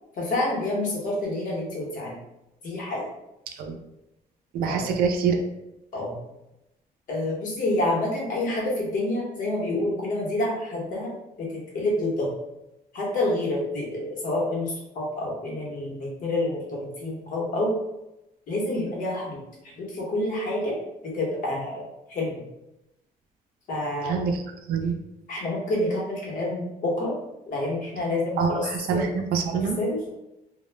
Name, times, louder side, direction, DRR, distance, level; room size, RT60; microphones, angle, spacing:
voice 1, 0.2-2.2 2.6-3.1 4.7-4.9 5.9-6.1 7.1-11.1 11.4-12.3 12.9-17.7 18.5-20.8 21.1-21.8 22.1-22.4 23.7-24.2 25.3-27.1 27.5-28.6 28.9-29.2 29.8-30.1, left 1 dB, 60° left, -4 dB, 0.9 m, -28 dB
voice 2, 4.5-5.4 24.0-24.4 24.7-24.9 28.4-29.8, right 5 dB, 85° right, 4 dB, 0.4 m, -25 dB
2.2 x 2.0 x 3.2 m, 0.90 s
cardioid pair, 145°, 15 cm